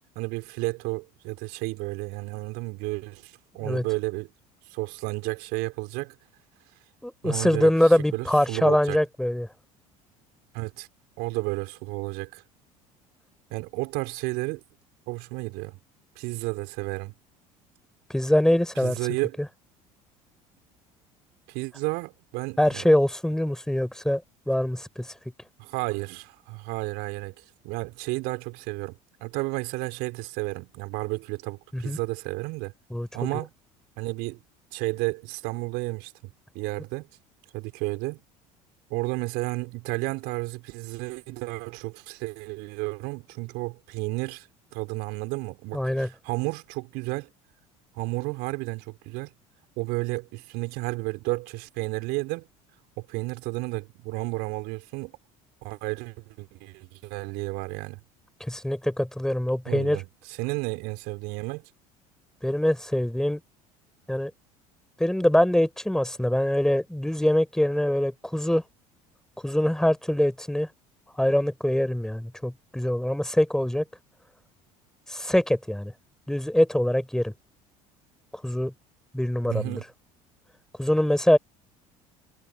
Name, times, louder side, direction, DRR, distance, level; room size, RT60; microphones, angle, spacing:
voice 1, 0.1-4.3 4.7-6.1 7.2-7.7 8.1-9.0 10.5-10.9 11.2-12.4 13.5-14.6 15.1-15.8 16.2-17.1 18.8-19.4 21.5-22.9 25.6-27.3 27.6-32.7 33.1-33.5 34.0-34.4 34.7-36.1 36.5-37.1 37.5-38.2 38.9-44.5 44.7-47.3 47.9-49.3 49.8-52.4 53.0-55.1 55.6-58.0 59.6-61.6 79.4-79.8, right 25 dB, 60° right, 4.7 m, -32 dB
voice 2, 7.0-9.5 18.1-19.0 22.6-25.1 31.7-32.0 32.9-33.1 45.7-46.1 58.5-60.0 62.4-63.4 64.1-64.3 65.0-68.6 69.4-70.7 71.2-73.8 75.1-75.9 76.3-77.3 78.4-78.7 79.1-79.8 80.8-81.4, left 1 dB, 5° left, 4.1 m, -23 dB
figure-of-eight pair, 65°, 18 cm